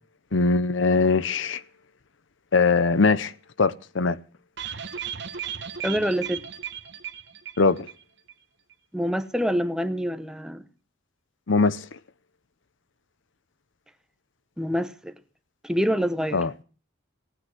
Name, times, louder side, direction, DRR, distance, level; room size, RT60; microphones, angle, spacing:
voice 1, 0.3-1.6 2.5-3.3 3.6-4.2 7.6-7.9 11.5-11.8 16.3-16.5, left 4 dB, 65° left, 0.7 m, -21 dB
sound 1, 4.6-8.0 8.3-8.4 8.7-8.8, right 8 dB, 55° right, 1.1 m, -35 dB
voice 2, 5.8-6.5 8.9-10.6 14.6-15.1 15.6-16.4, equal, 5° right, 0.9 m, -26 dB
18.0 x 9.8 x 7.7 m
head